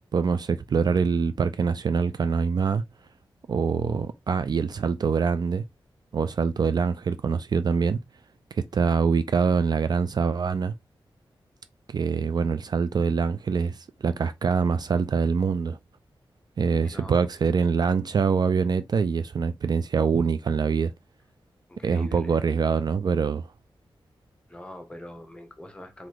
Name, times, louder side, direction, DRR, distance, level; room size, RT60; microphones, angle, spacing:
voice 1, 0.1-2.8 3.5-5.6 6.1-8.0 8.5-10.7 11.9-15.8 16.6-20.9 21.8-23.5, right 5 dB, 50° right, 0.4 m, -24 dB
voice 2, 16.8-17.3 21.7-22.4 24.5-26.1, left 1 dB, 10° left, 0.9 m, -43 dB
3.9 x 2.5 x 4.6 m
wide cardioid pair, 160°, 9 cm